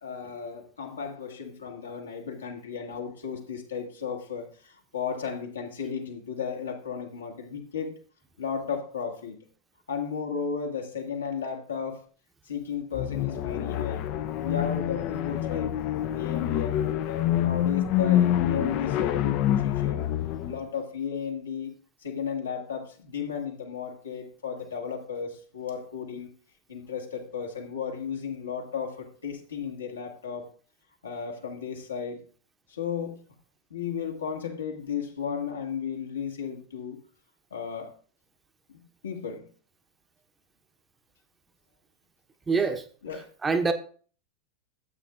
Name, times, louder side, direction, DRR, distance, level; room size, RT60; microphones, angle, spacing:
voice 1, 0.0-7.9 8.4-9.4 9.9-12.0 12.5-14.1 14.4-15.7 16.1-20.1 20.5-21.7 22.0-26.3 26.7-30.5 31.0-32.2 32.7-33.2 33.7-37.0 37.5-37.9 39.0-39.4 43.0-43.3, left 7 dB, 70° left, 2 dB, 2.0 m, -34 dB
sound 1, 12.9-20.6, left 11 dB, 40° left, 0.6 m, -26 dB
voice 2, 42.5-42.9 43.1-43.7, right 4 dB, 15° right, 7 dB, 0.9 m, -26 dB
13.5 x 8.5 x 2.5 m, 0.43 s
figure-of-eight pair, 90°, 0 cm